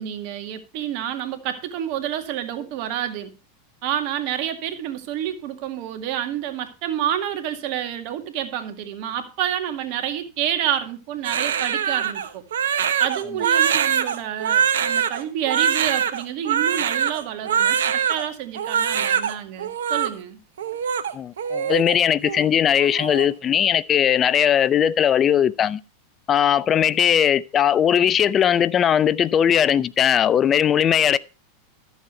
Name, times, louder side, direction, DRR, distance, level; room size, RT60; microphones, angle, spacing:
voice 1, 0.0-3.3 3.8-12.4 13.0-20.4, right 10 dB, 55° right, 2.0 m, -28 dB
Crying sobbing, 11.2-18.2 18.6-19.3 19.6-20.1 20.6-22.0 22.2-22.5 22.8-23.3, right 8 dB, 80° right, 1.0 m, -23 dB
voice 2, 21.1-25.8 26.3-31.2, left 9 dB, 30° left, 0.6 m, -19 dB
13.0 x 7.2 x 4.4 m
hypercardioid pair, 95°, 0 cm